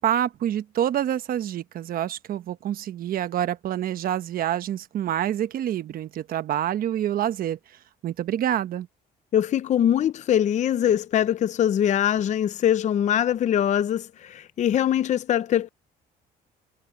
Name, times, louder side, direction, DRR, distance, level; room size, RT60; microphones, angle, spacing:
voice 1, 0.0-7.6 8.0-8.9, right 11 dB, 60° right, 1.1 m, -27 dB
voice 2, 9.3-15.7, left 10 dB, 45° left, 0.6 m, -22 dB
cardioid pair, 110°, 17 cm